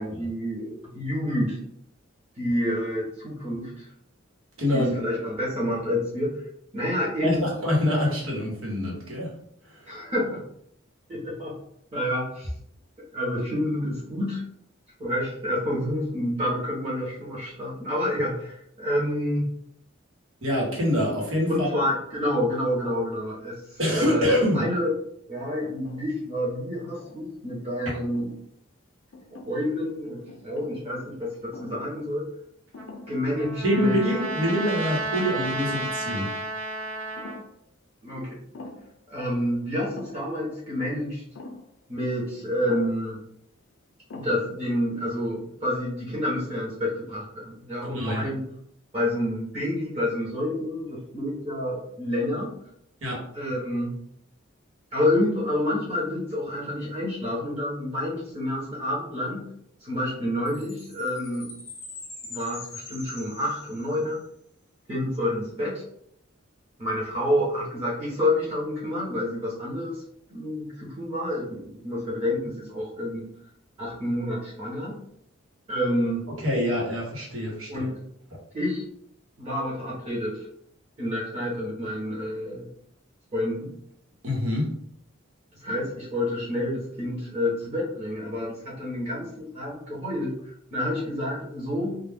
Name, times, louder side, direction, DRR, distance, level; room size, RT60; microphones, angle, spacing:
voice 1, 0.0-1.6 2.4-3.9 4.7-6.4 6.7-7.5 9.9-10.4 11.1-11.6 11.9-12.5 13.0-14.4 15.0-19.5 21.5-24.3 24.5-24.9 25.3-28.3 29.4-32.3 33.1-34.0 38.0-38.4 39.1-41.2 41.9-43.2 44.1-48.4 48.9-52.5 53.3-54.0 54.9-59.5 59.8-61.5 62.3-64.2 64.9-65.8 66.8-70.0 70.3-73.3 73.8-75.0 75.7-76.3 77.7-77.9 78.5-78.8 79.4-80.5 81.0-82.7 83.3-83.7 85.6-90.4 90.7-92.0, left 1 dB, 30° right, -6 dB, 0.9 m, -28 dB
voice 2, 4.6-5.0 7.2-9.3 9.7-9.9 20.4-21.7 23.8-24.7 33.6-36.3 47.8-48.3 53.0-53.2 76.4-77.9 84.2-84.7, left 1 dB, 85° right, -3 dB, 1.1 m, -25 dB
sound 1, 25.6-26.2 26.7-27.5 28.0-28.3 29.1-29.8 30.3-30.8 31.5-32.1 32.3-32.4 32.7-33.2 33.6-33.7 34.2-34.9 35.2-35.3 35.7-36.1 37.2-37.6 38.5-39.0 40.0-40.3 41.3-41.7 42.7-43.1 43.7-43.8 44.1-44.6, left 2 dB, 65° left, 0.4 m, -44 dB
Trumpet, 32.8-37.4, right 2 dB, 65° right, 0.7 m, -32 dB
Chime, 60.5-64.2, left 3 dB, 15° left, 0.7 m, -43 dB
2.3 x 2.2 x 3.4 m, 0.71 s
head